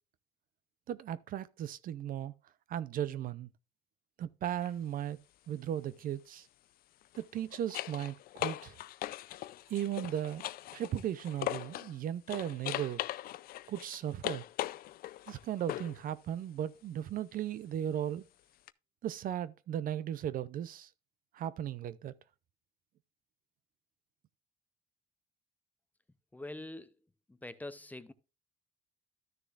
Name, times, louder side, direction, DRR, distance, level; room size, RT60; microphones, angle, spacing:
voice 1, 0.9-2.3 2.7-3.5 4.2-5.2 5.5-6.5 7.2-8.8 9.7-10.4 10.7-13.0 13.7-14.4 15.3-18.3 19.0-20.9 21.3-22.1, right 10 dB, 55° right, 0.5 m, -36 dB
sound 1, 4.5-4.7 7.0-11.9 12.3-16.0 18.7-18.8, left 14 dB, 60° left, 0.4 m, -40 dB
voice 2, 26.3-26.9 27.3-28.1, left 2 dB, 10° left, 0.6 m, -44 dB
13.0 x 6.6 x 2.4 m
cardioid pair, 110°, 17 cm